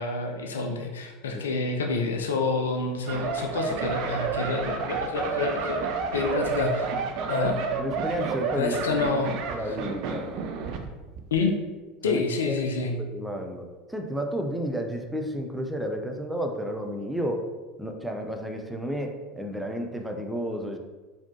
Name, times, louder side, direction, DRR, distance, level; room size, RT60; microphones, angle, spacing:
voice 1, 0.0-5.8 6.1-6.9 7.3-7.6 8.5-9.6 11.3-11.6 12.0-12.9, left 3 dB, 70° left, 3 dB, 0.5 m, -28 dB
sound 1, 3.1-10.9 11.2-11.4, right 5 dB, 50° right, 0.4 m, -30 dB
voice 2, 7.8-9.2 9.5-10.3 12.0-12.7 13.1-17.4 17.8-20.8, equal, 5° right, 3 dB, 0.5 m, -32 dB
4.2 x 4.1 x 2.7 m, 1.2 s
figure-of-eight pair, 75°, 0 cm